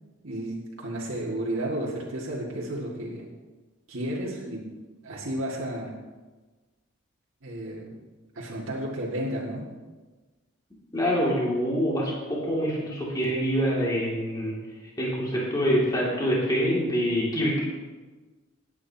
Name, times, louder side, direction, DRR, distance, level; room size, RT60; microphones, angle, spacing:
voice 1, 0.2-3.3 3.9-4.6 5.0-6.0 7.4-8.0 8.3-9.7, right 1 dB, 70° right, -5 dB, 2.1 m, -32 dB
voice 2, 10.9-14.5 15.0-17.6, equal, 20° left, -5 dB, 2.5 m, -25 dB
18.5 x 9.5 x 2.9 m, 1.3 s
head